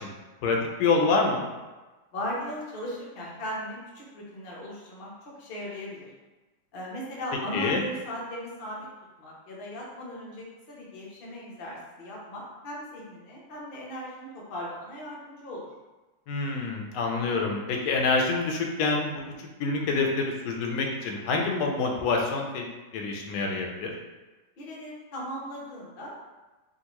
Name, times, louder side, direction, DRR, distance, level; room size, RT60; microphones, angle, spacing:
voice 1, 0.4-1.5 7.5-7.8 16.3-19.1 19.6-22.7 22.9-23.9, left 3 dB, 70° left, 1 dB, 1.0 m, -26 dB
voice 2, 2.1-6.1 6.7-8.9 9.2-15.7 24.6-26.1, equal, 55° left, -4 dB, 0.6 m, -38 dB
3.6 x 2.5 x 2.9 m, 1.2 s
omnidirectional pair, 1.9 m